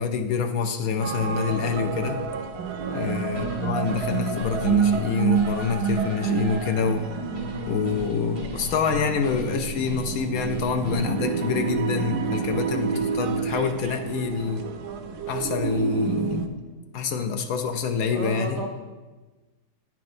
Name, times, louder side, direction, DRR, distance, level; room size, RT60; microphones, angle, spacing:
voice 1, 0.0-2.2 2.9-7.0 7.7-14.7 15.3-16.5 16.9-18.6, left 5 dB, 70° left, 5 dB, 0.9 m, -26 dB
sound 1, 1.0-16.5, right 6 dB, 80° right, 1.1 m, -28 dB
sound 2, 3.4-11.3, left 1 dB, 90° left, 3.0 m, -36 dB
voice 2, 18.1-18.7, right 3 dB, 65° right, 2 dB, 0.7 m, -33 dB
9.9 x 6.0 x 2.6 m, 1.2 s
omnidirectional pair, 1.7 m